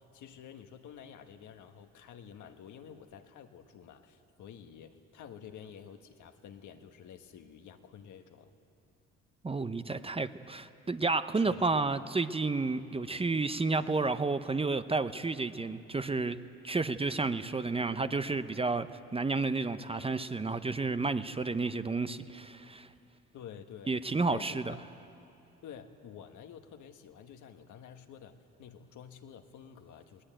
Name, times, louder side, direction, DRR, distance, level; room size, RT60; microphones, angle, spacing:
voice 1, 0.0-8.5 11.3-11.6 12.0-12.1 23.3-23.9 24.3-24.8 25.6-30.2, left 8 dB, 75° left, 6 dB, 1.5 m, -50 dB
voice 2, 9.4-16.4 16.6-18.9 19.1-22.9 23.9-24.7, right 3 dB, 20° right, 11 dB, 0.7 m, -31 dB
21.5 x 19.0 x 9.0 m, 2.8 s
cardioid pair, 90°, 30 cm